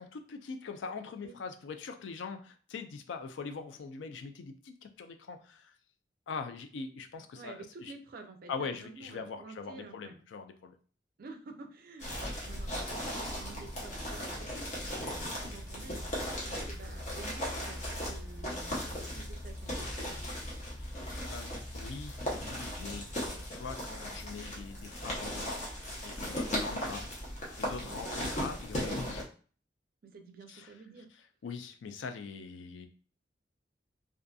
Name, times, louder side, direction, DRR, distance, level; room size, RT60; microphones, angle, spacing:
voice 1, 0.0-5.8 6.3-7.9 8.5-10.8 20.7-25.7 26.0-27.1 27.6-29.3 30.5-30.7 31.4-32.9, left 5 dB, 90° left, 8 dB, 0.4 m, -42 dB
voice 2, 7.3-10.1 11.2-16.0 16.4-20.2 26.4-26.7 27.8-28.0 30.0-31.1, right 3 dB, 55° right, 6 dB, 0.4 m, -50 dB
sound 1, 12.0-29.2, equal, 40° left, 0.8 m, -37 dB
2.5 x 2.5 x 2.3 m, 0.41 s
head